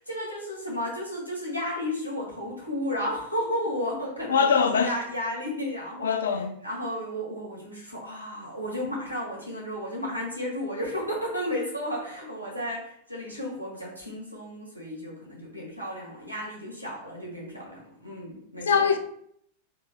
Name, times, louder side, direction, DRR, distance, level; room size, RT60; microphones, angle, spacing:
voice 1, 0.0-18.9, left 1 dB, 90° left, 1.4 m, -33 dB
voice 2, 4.3-4.9 6.0-6.6 18.7-19.0, left 6 dB, 65° left, 0.4 m, -22 dB
3.8 x 2.7 x 3.8 m
figure-of-eight pair, 90°, 0 cm